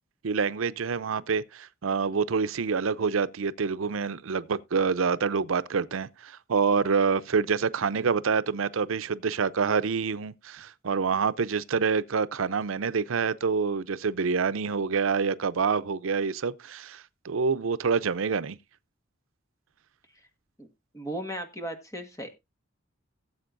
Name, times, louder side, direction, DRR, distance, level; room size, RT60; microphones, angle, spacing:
voice 1, 0.2-18.5, right 5 dB, 90° right, 0.6 m, -27 dB
voice 2, 20.9-22.4, right 1 dB, 15° left, 1.6 m, -36 dB
17.5 x 7.7 x 2.5 m
head